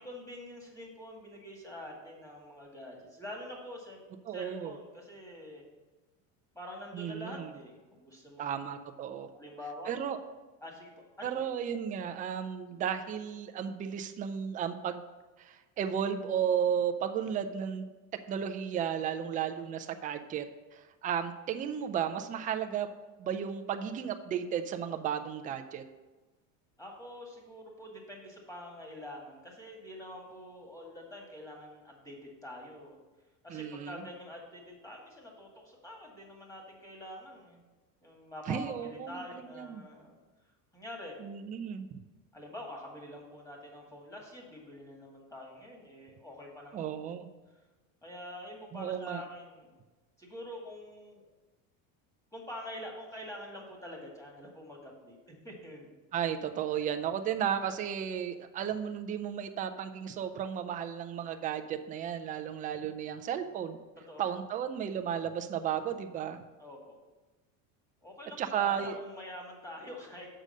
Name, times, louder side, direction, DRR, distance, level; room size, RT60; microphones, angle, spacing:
voice 1, 0.0-4.0 4.3-5.7 6.5-8.7 9.3-9.9 10.6-11.5 26.8-33.0 33.4-37.6 38.0-40.1 40.7-41.1 42.3-47.1 48.0-49.8 50.2-51.3 52.3-56.0 64.1-64.2 66.6-67.0 68.0-70.3, left 1 dB, 5° left, -1 dB, 2.0 m, -46 dB
voice 2, 4.3-4.7 6.9-7.5 8.4-9.3 9.9-10.2 11.2-15.0 15.4-17.8 18.3-20.4 20.7-22.9 23.2-25.8 33.5-34.0 38.5-39.8 41.2-42.0 46.7-47.3 48.7-49.2 56.1-63.8 64.2-66.4 68.4-69.0, right 8 dB, 20° right, 8 dB, 0.3 m, -34 dB
6.5 x 4.9 x 6.5 m, 1.2 s
supercardioid pair, 120°, 44 cm